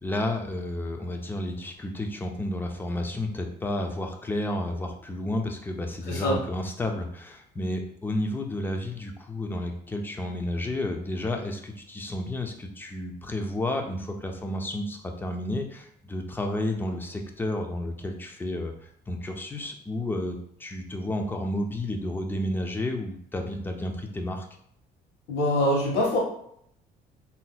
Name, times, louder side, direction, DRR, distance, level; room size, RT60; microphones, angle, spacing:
voice 1, 0.0-24.4, left 1 dB, 10° left, 3 dB, 0.5 m, -31 dB
voice 2, 6.1-6.4 25.3-26.2, left 1 dB, 75° left, -2 dB, 1.2 m, -24 dB
3.8 x 2.7 x 2.2 m, 0.68 s
cardioid pair, 110°, 17 cm